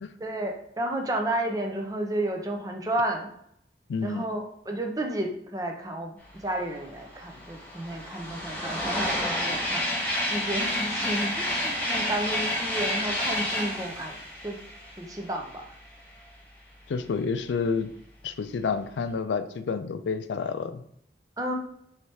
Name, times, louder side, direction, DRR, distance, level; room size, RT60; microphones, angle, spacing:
voice 1, 0.2-3.3 4.0-9.8 10.3-14.2 14.4-14.6 14.9-15.8 21.4-21.5, right 1 dB, 20° right, 2 dB, 0.5 m, -32 dB
voice 2, 3.9-4.2 16.9-17.9 18.2-20.8, left 5 dB, 85° left, 11 dB, 0.4 m, -29 dB
sound 1, 6.7-6.8 7.1-15.7, left 1 dB, 10° left, 0.9 m, -30 dB
4.7 x 3.2 x 2.7 m, 0.71 s
head